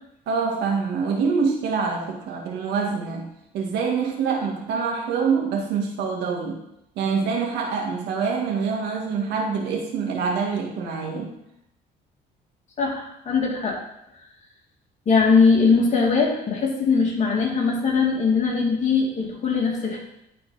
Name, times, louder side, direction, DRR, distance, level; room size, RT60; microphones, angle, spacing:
voice 1, 0.3-3.3 3.5-6.6 6.9-11.3, right 5 dB, 85° right, 1 dB, 1.7 m, -25 dB
voice 2, 12.8-13.8 15.1-20.0, left 5 dB, 45° left, -2 dB, 2.5 m, -20 dB
11.5 x 4.3 x 4.1 m, 0.81 s
cardioid pair, 110°, 17 cm